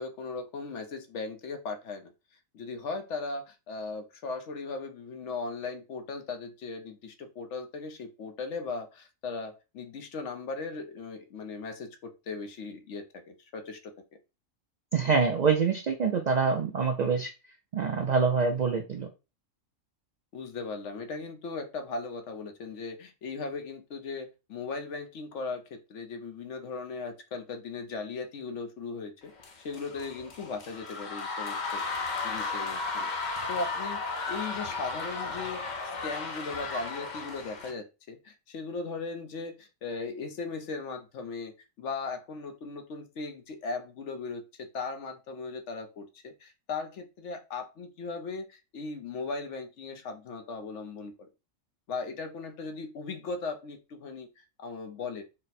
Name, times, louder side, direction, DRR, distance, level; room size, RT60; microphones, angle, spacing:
voice 1, 0.0-2.1 2.5-13.9 20.3-29.3 29.6-31.8 32.2-33.1 33.5-35.7 36.0-51.3 51.9-55.2, left 4 dB, 65° left, 6 dB, 1.0 m, -38 dB
voice 2, 14.9-17.3 17.7-19.1, right 5 dB, 75° right, 4 dB, 0.4 m, -25 dB
sound 1, 29.4-37.7, left 4 dB, 45° left, 0.7 m, -35 dB
4.1 x 2.1 x 4.1 m, 0.29 s
omnidirectional pair, 1.4 m